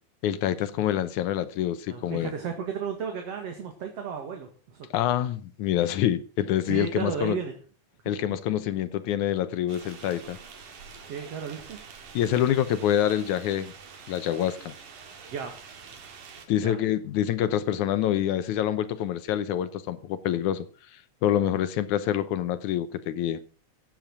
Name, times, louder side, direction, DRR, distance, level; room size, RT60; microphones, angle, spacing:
voice 1, 0.2-2.3 4.9-7.4 8.1-10.4 12.1-13.7 14.1-14.7 16.5-20.7 21.2-23.4, left 11 dB, 80° left, 2.3 m, -26 dB
voice 2, 1.9-4.9 6.7-7.5 11.0-11.8 15.3-15.5 16.6-16.8, right 6 dB, 55° right, 2.8 m, -33 dB
sound 1, 9.7-16.5, right 5 dB, 90° right, 3.8 m, -46 dB
15.5 x 8.8 x 6.1 m
omnidirectional pair, 3.5 m